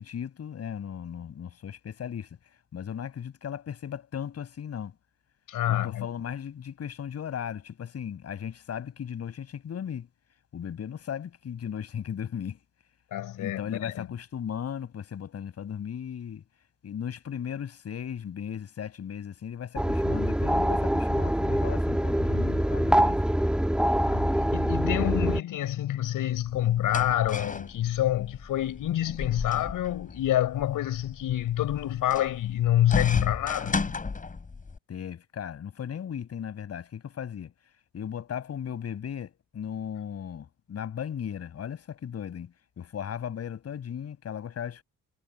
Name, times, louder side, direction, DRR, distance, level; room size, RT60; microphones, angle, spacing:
voice 1, 0.0-2.3 2.7-4.9 5.7-10.1 10.5-12.6 13.4-16.4 16.8-23.2 34.9-37.5 37.9-44.8, left 8 dB, 45° left, 7.2 m, -36 dB
voice 2, 5.5-6.1 13.1-14.1 24.1-33.8, left 12 dB, 65° left, 5.4 m, -27 dB
sound 1, 19.8-25.4, equal, 5° right, 2.7 m, -25 dB
sound 2, 26.3-34.8, left 4 dB, 25° left, 7.3 m, -34 dB
cardioid pair, 125°, 34 cm